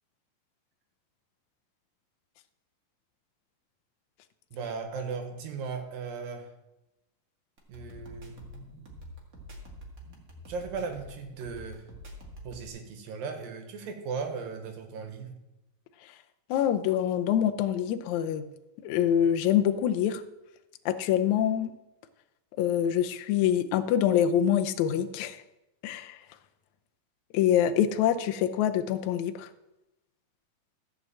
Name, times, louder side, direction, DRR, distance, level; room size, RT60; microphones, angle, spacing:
voice 1, 4.5-6.5 7.7-8.9 10.1-11.9 12.4-15.4, right 5 dB, 80° right, 5 dB, 3.1 m, -37 dB
sound 1, 7.6-12.7, equal, 30° right, 1.8 m, -46 dB
voice 2, 16.5-18.4 18.8-20.2 20.9-21.7 22.6-25.4 25.8-26.2 27.3-29.5, left 10 dB, 75° left, 8 dB, 1.8 m, -25 dB
14.5 x 6.2 x 7.6 m, 0.95 s
omnidirectional pair, 4.1 m